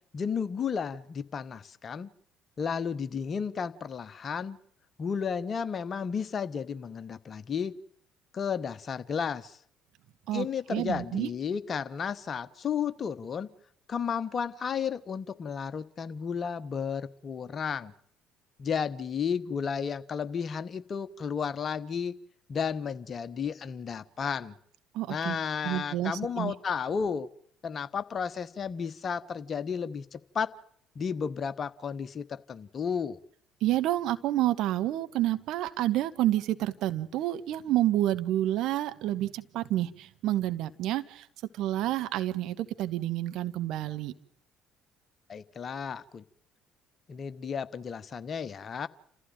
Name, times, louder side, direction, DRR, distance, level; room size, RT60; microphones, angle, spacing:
voice 1, 0.1-2.1 2.6-4.6 5.0-7.7 8.3-9.6 10.3-13.5 13.9-17.9 18.6-22.2 22.5-24.6 25.1-27.3 27.6-30.5 30.9-33.2 45.3-46.2 47.1-48.9, left 6 dB, 40° left, 14 dB, 1.2 m, -33 dB
voice 2, 10.3-11.3 24.9-25.4 25.6-26.5 33.6-41.3 41.5-44.1, right 14 dB, 60° right, 10 dB, 1.3 m, -29 dB
29.0 x 15.0 x 9.1 m, 0.66 s
figure-of-eight pair, 55°, 0 cm